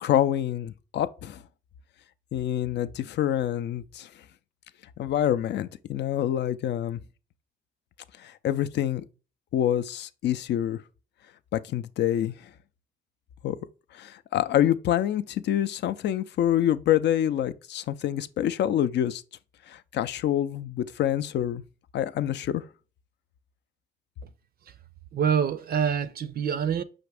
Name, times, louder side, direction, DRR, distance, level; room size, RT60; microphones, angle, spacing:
voice 1, 0.0-1.4 2.3-4.1 5.0-7.0 8.2-9.0 9.5-10.8 11.5-12.3 13.4-13.6 13.9-19.2 19.7-21.6 21.9-22.7, left 11 dB, 60° left, 0.4 m, -26 dB
voice 2, 25.1-26.8, right 7 dB, 50° right, 0.4 m, -26 dB
5.7 x 2.6 x 3.3 m
cardioid pair, 90°, 20 cm